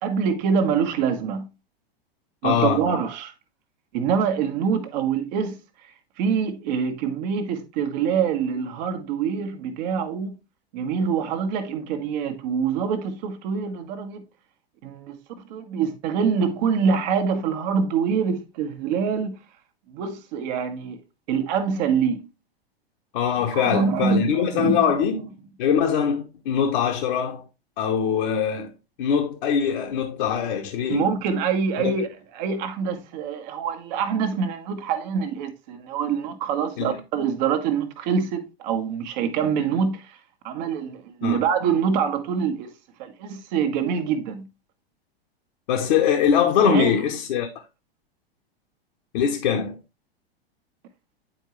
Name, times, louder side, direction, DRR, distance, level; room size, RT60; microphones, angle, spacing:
voice 1, 0.0-1.5 2.4-3.3 3.9-5.6 6.2-10.3 10.7-14.2 14.8-15.2 15.5-19.4 19.9-21.0 21.3-22.2 23.5-24.8 30.9-32.1 32.3-40.2 40.4-42.7 43.0-44.5 46.6-47.0, right 6 dB, 45° right, 1.3 m, -25 dB
voice 2, 2.4-2.8 23.1-25.3 25.6-27.4 27.8-28.7 29.0-31.2 31.8-31.9 36.8-36.9 41.2-41.4 45.7-47.5 49.1-49.8, left 8 dB, 50° left, 1.1 m, -22 dB
9.2 x 4.6 x 3.1 m
figure-of-eight pair, 95°, 31 cm